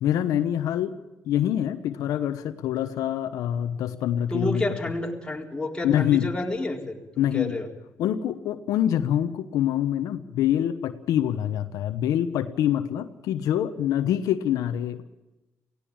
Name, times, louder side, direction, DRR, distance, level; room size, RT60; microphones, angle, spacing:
voice 1, 0.0-0.9 1.2-4.6 5.8-6.3 7.2-7.5 8.0-15.0, left 11 dB, 85° left, 9 dB, 1.0 m, -25 dB
voice 2, 4.3-7.7, left 1 dB, 15° left, 0 dB, 4.0 m, -30 dB
17.5 x 17.0 x 8.8 m, 1.0 s
cardioid pair, 75°, 6 cm